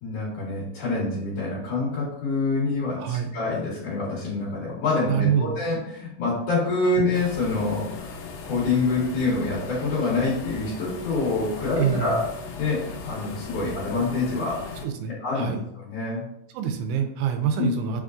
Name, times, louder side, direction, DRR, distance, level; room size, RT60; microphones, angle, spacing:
voice 1, 0.0-8.1 8.4-12.2 12.6-14.7 15.1-16.2 17.6-17.7, left 3 dB, 60° left, -9 dB, 2.1 m, -26 dB
voice 2, 3.0-3.3 5.1-5.5 11.8-12.2 14.8-15.6 16.5-18.0, right 8 dB, 85° right, 6 dB, 2.0 m, -26 dB
sound 1, 7.1-14.8, left 4 dB, 80° left, 1.6 m, -38 dB
4.7 x 3.6 x 2.5 m, 0.79 s
omnidirectional pair, 3.5 m